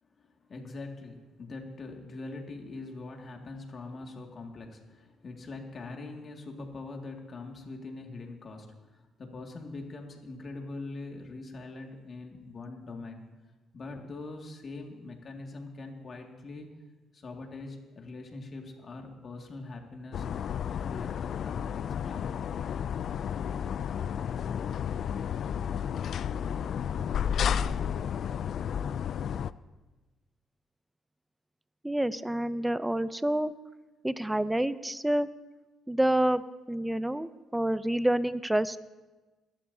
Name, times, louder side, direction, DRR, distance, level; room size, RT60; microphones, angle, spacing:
voice 1, 0.0-13.3 13.7-16.7 17.1-20.3 20.7-22.4, left 3 dB, 45° left, 2 dB, 2.2 m, -43 dB
sound 1, 20.1-29.5, left 8 dB, 65° left, 0.3 m, -32 dB
voice 2, 31.8-33.5 34.0-35.3 35.9-36.4 36.7-38.8, right 1 dB, 5° right, 14 dB, 0.5 m, -28 dB
21.5 x 11.5 x 2.8 m, 1.2 s
cardioid pair, 90°, 0 cm